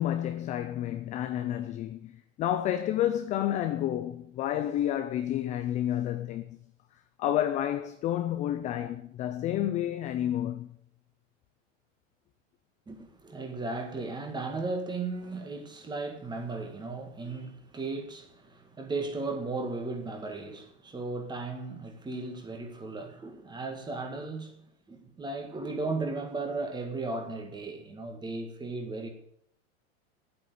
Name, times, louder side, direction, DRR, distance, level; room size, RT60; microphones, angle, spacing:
voice 1, 0.0-6.6 7.2-10.7, left 11 dB, 20° left, 0.5 m, -30 dB
voice 2, 12.9-24.6 24.9-29.1, right 3 dB, 10° right, 1.8 m, -36 dB
9.6 x 8.7 x 9.3 m
supercardioid pair, 145°, 38 cm